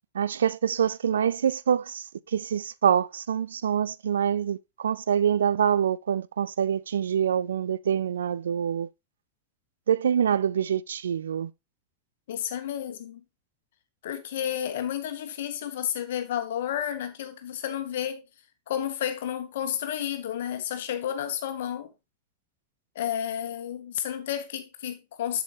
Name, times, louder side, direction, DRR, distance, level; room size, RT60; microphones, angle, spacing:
voice 1, 0.1-8.9 9.9-11.5, right 8 dB, 65° right, 0.3 m, -25 dB
voice 2, 12.3-13.2 14.0-18.2 18.7-21.9 22.9-25.4, left 10 dB, 55° left, 1.2 m, -31 dB
7.7 x 7.0 x 3.1 m
figure-of-eight pair, 90°, 0 cm